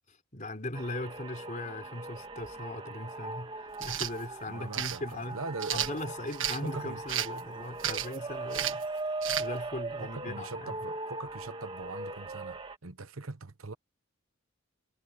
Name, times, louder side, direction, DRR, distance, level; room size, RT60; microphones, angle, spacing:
voice 1, 0.1-5.4 5.7-8.9 9.4-10.7, left 1 dB, 40° left, 4.5 m, -39 dB
sound 1, 0.7-12.8, right 2 dB, 25° right, 1.9 m, -40 dB
sound 2, 3.7-4.1 4.7-5.0 5.6-6.6 7.1-7.4 7.8-8.2 8.5-8.8 9.2-9.5, right 10 dB, 65° right, 1.6 m, -32 dB
voice 2, 4.5-6.0 6.6-7.0 10.0-13.7, right 3 dB, 80° right, 1.1 m, -41 dB
head